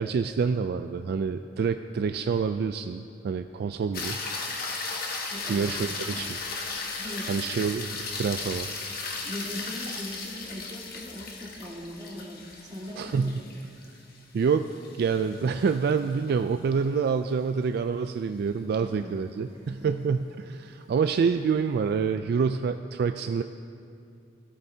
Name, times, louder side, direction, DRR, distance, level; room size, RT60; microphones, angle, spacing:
voice 1, 0.0-4.2 5.5-6.4 7.3-8.7 13.0-13.4 14.3-14.7 15.0-23.4, right 5 dB, 60° right, 9 dB, 0.3 m, -27 dB
sound 1, 3.9-16.3 20.8-20.9, left 3 dB, 55° left, 1.2 m, -36 dB
voice 2, 5.3-5.7 6.1-6.3 7.0-7.3 8.8-9.0 9.2-13.3 18.7-19.1 19.7-19.9, left 1 dB, 25° right, -3 dB, 2.0 m, -40 dB
17.0 x 13.0 x 2.7 m, 2.5 s
head